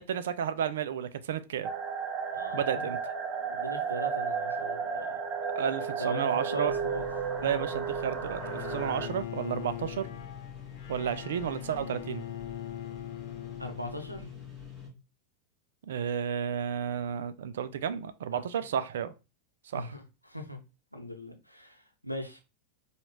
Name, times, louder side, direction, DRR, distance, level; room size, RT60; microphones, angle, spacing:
voice 1, 0.0-1.7 2.5-3.0 5.6-6.7 7.4-10.1 10.9-12.2 15.9-19.1 19.7-19.9, right 8 dB, 60° right, 0.4 m, -32 dB
sound 1, 1.6-9.1, right 6 dB, 25° right, 0.8 m, -33 dB
voice 2, 2.3-2.9 3.5-5.1 6.0-7.1 7.4-7.6 13.6-14.3 18.3-18.4 19.7-20.0 20.3-20.6 20.9-22.4, equal, 90° left, 0.7 m, -39 dB
sound 2, 6.6-14.9, left 7 dB, 5° right, 2.4 m, -45 dB
Bowed string instrument, 8.4-14.5, left 11 dB, 50° left, 0.5 m, -42 dB
4.8 x 2.4 x 3.3 m
figure-of-eight pair, 90°, 0 cm